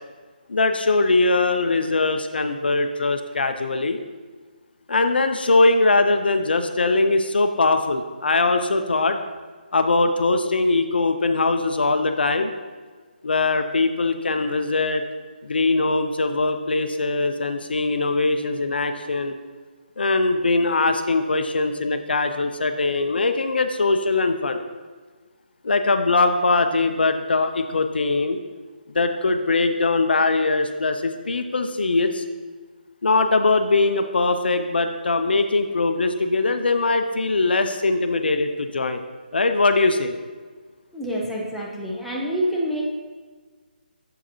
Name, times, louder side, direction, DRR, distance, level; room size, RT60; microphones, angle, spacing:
voice 1, 0.5-4.0 4.9-9.2 9.7-12.5 13.2-15.0 15.4-19.3 20.0-24.6 25.6-28.4 28.9-32.2 33.0-39.0 39.3-40.1, left 3 dB, 75° left, 7 dB, 0.5 m, -21 dB
voice 2, 40.9-42.8, equal, ahead, -5 dB, 0.6 m, -27 dB
7.2 x 4.5 x 3.0 m, 1.5 s
figure-of-eight pair, 155°, 5 cm